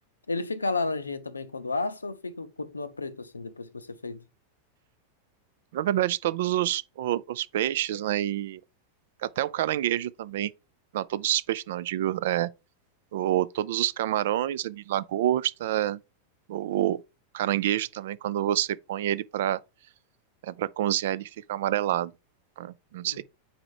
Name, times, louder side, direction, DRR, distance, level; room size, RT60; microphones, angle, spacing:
voice 1, 0.3-4.2 23.0-23.2, left 3 dB, 80° left, 0.6 m, -32 dB
voice 2, 5.7-8.6 9.2-10.5 10.9-12.5 13.1-16.0 16.5-17.0 17.3-19.6 20.4-22.1 22.6-23.2, right 12 dB, 55° right, 0.3 m, -27 dB
4.8 x 4.3 x 4.7 m
figure-of-eight pair, 90°, 0 cm